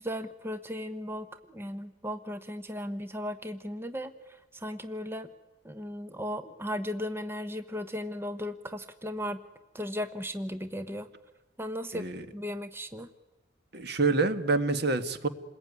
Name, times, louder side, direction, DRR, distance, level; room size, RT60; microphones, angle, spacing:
voice 1, 0.0-5.3 5.6-9.4 9.7-11.1 11.6-12.1 12.3-13.1, equal, 10° right, 10 dB, 1.0 m, -36 dB
voice 2, 11.9-12.2 13.7-15.3, right 3 dB, 55° right, 10 dB, 1.6 m, -27 dB
28.0 x 21.0 x 9.6 m, 1.2 s
head